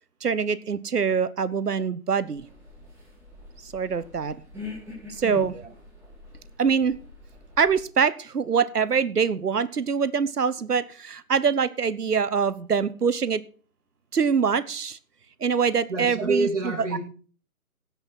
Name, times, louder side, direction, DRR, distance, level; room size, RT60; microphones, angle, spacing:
voice 1, 0.2-2.5 3.6-4.4 5.1-5.5 6.6-6.9 7.6-13.4 14.1-15.0 15.4-16.5 16.9-17.0, right 6 dB, 90° right, 1.0 m, -24 dB
sound 1, 2.4-7.8, left 3 dB, 5° right, 2.7 m, -43 dB
voice 2, 15.9-17.0, right 3 dB, 50° right, 3.3 m, -27 dB
16.5 x 5.8 x 5.9 m
figure-of-eight pair, 155°, 45 cm